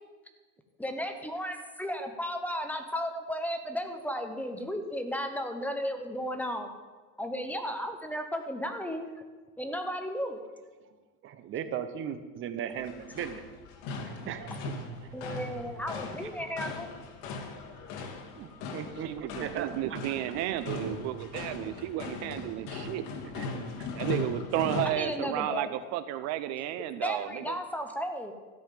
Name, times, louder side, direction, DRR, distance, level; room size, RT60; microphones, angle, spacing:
voice 1, 0.8-6.7 7.2-9.1 9.6-10.4 15.1-16.9 24.9-25.8 27.0-28.3, equal, 5° left, 6 dB, 1.0 m, -34 dB
voice 2, 11.2-13.4 14.0-15.4 16.2-16.3 18.4-20.4 23.3-23.9, right 8 dB, 40° right, 11 dB, 0.9 m, -38 dB
sound 1, 12.7-24.9, left 4 dB, 70° left, 1.9 m, -39 dB
voice 3, 19.0-23.1 23.9-27.6, right 13 dB, 60° right, 12 dB, 0.7 m, -32 dB
13.0 x 5.6 x 9.0 m, 1.4 s
cardioid pair, 145°, 30 cm